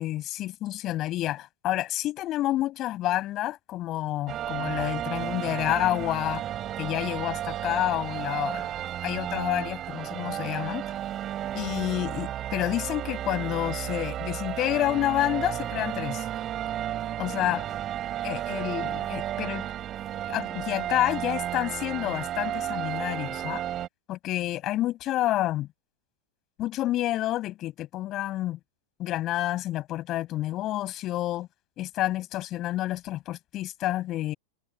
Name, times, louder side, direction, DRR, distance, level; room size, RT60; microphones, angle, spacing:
voice 1, 0.0-6.4 6.8-8.7 9.0-10.8 11.5-16.3 17.2-17.7 18.2-19.7 20.3-23.6 24.1-25.7 26.6-28.6 29.0-31.5 31.8-34.3, left 15 dB, 35° left, 7.8 m, -29 dB
sound 1, 4.3-23.9, right 11 dB, 30° right, 3.4 m, -33 dB
figure-of-eight pair, 90°, 0 cm